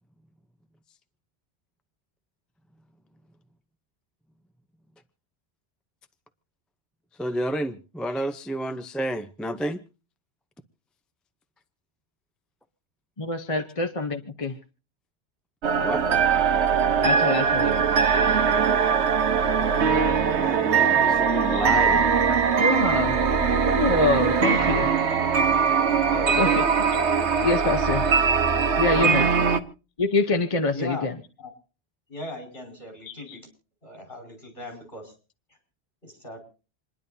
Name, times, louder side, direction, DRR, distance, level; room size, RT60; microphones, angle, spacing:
voice 1, 7.2-9.8 15.8-16.0 20.4-22.0, equal, ahead, 0.5 m, -30 dB
voice 2, 13.2-14.6 17.0-17.8 21.4-21.7 22.6-23.3 23.8-24.9 26.4-26.5 27.4-28.0 28.8-29.3 30.0-31.1 33.1-33.4, left 3 dB, 30° left, 0.9 m, -25 dB
sound 1, 15.6-29.6, right 6 dB, 85° right, 1.3 m, -21 dB
voice 3, 26.1-26.7 27.6-27.8 28.9-29.3 30.7-31.1 31.4-31.5 32.1-33.4 33.8-35.1 36.0-36.4, left 1 dB, 50° left, 5.7 m, -37 dB
28.0 x 10.5 x 2.7 m
omnidirectional pair, 1.1 m